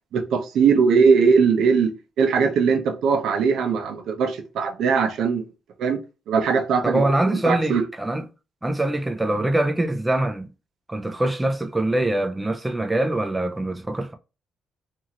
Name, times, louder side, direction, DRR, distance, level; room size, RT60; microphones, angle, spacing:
voice 1, 0.1-1.9 2.2-5.5 5.8-6.0 6.3-7.0 7.3-7.8, right 5 dB, 75° right, 0.6 m, -20 dB
voice 2, 6.8-8.2 8.6-10.5 10.9-14.1, right 1 dB, 10° right, 0.4 m, -23 dB
2.7 x 2.5 x 2.9 m
cardioid pair, 90°, 0 cm